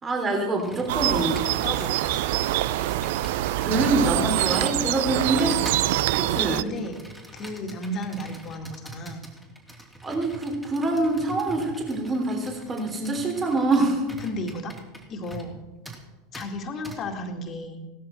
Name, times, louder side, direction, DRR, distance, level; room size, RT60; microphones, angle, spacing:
voice 1, 0.0-1.5 3.6-5.6 6.2-6.7 10.0-14.0, right 2 dB, 25° right, 2 dB, 3.3 m, -25 dB
Computer keyboard, 0.6-15.6 15.8-16.0 16.3-16.5 16.8-17.0, right 2 dB, 5° right, 3.0 m, -43 dB
sound 1, 0.9-6.6, right 15 dB, 65° right, 0.4 m, -25 dB
voice 2, 6.3-7.0 7.3-9.2 14.2-14.8 15.1-15.6 16.3-17.8, left 1 dB, 40° left, 4 dB, 2.2 m, -33 dB
16.0 x 13.0 x 4.5 m, 1.2 s
hypercardioid pair, 85°, 0 cm